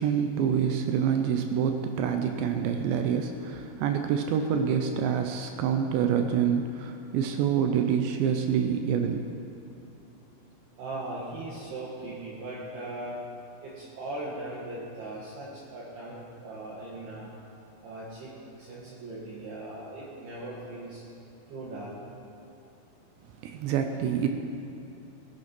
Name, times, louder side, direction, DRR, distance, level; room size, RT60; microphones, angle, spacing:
voice 1, 0.0-9.3 23.4-24.3, right 7 dB, 80° right, 6 dB, 2.6 m, -27 dB
voice 2, 10.8-13.2 13.6-17.3 17.8-21.0 21.5-21.9, right 2 dB, 60° right, -7 dB, 3.6 m, -39 dB
20.0 x 9.1 x 6.0 m, 2.8 s
omnidirectional pair, 5.8 m